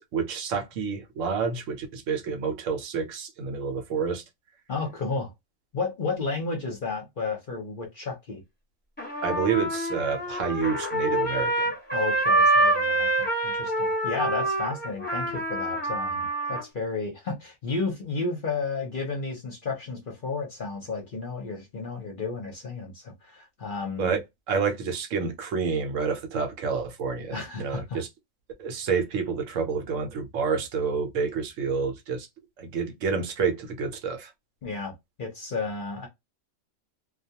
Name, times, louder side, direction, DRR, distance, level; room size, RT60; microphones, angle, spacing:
voice 1, 0.0-4.2 9.2-11.8 24.0-24.2 24.5-28.1 28.6-32.3 32.6-34.3, right 5 dB, 70° right, 1.0 m, -29 dB
voice 2, 4.7-5.3 5.7-8.4 11.9-24.2 27.3-28.0 34.6-34.9 35.2-36.1, left 4 dB, 50° left, 0.7 m, -32 dB
Trumpet, 9.0-16.6, right 2 dB, 10° left, 0.9 m, -26 dB
2.3 x 2.3 x 2.7 m
omnidirectional pair, 1.4 m